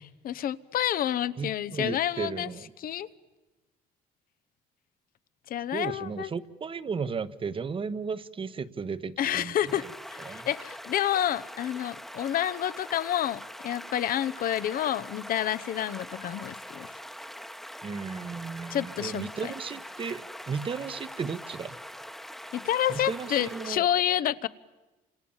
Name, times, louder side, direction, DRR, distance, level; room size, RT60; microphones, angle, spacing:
voice 1, 0.2-2.5 2.8-3.1 5.5-6.3 9.2-16.9 18.7-19.3 22.5-24.5, left 11 dB, 60° left, 0.9 m, -29 dB
voice 2, 1.4-2.7 5.7-9.8 10.2-10.5 17.8-21.8 22.9-23.9, right 5 dB, 30° right, 1.1 m, -35 dB
sound 1, 9.7-23.8, equal, ahead, 1.1 m, -43 dB
29.5 x 26.5 x 7.3 m
cardioid pair, 110°, 17 cm